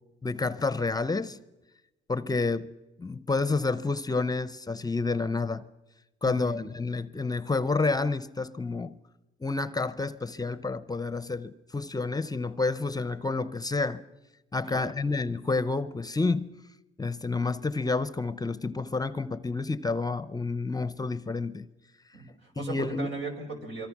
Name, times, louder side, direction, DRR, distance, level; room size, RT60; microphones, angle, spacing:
voice 1, 0.2-1.4 2.1-2.7 3.0-5.6 6.2-9.0 9.4-14.0 14.5-16.5 17.0-21.7 22.6-23.1, left 3 dB, 20° left, 0.7 m, -29 dB
voice 2, 6.2-6.6 14.6-14.9 22.1-23.9, right 3 dB, 75° right, 5.8 m, -37 dB
25.0 x 23.5 x 6.0 m
cardioid pair, 90°, 20 cm